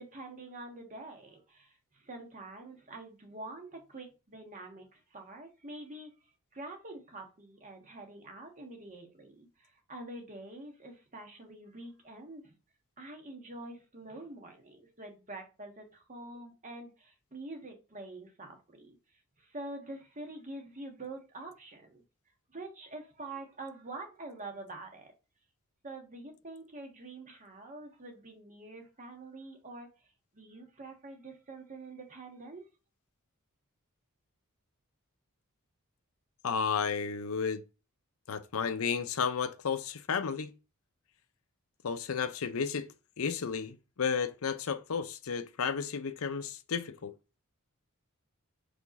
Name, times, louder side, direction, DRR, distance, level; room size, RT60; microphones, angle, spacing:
voice 1, 0.0-6.1 6.5-12.6 13.0-19.0 19.4-22.0 22.5-25.1 25.8-29.9 30.3-32.7, right 2 dB, 35° right, 1.6 m, -46 dB
voice 2, 36.4-37.6 38.3-40.5 41.8-42.9 43.2-47.1, left 6 dB, 65° left, 0.6 m, -32 dB
5.1 x 3.5 x 5.2 m
head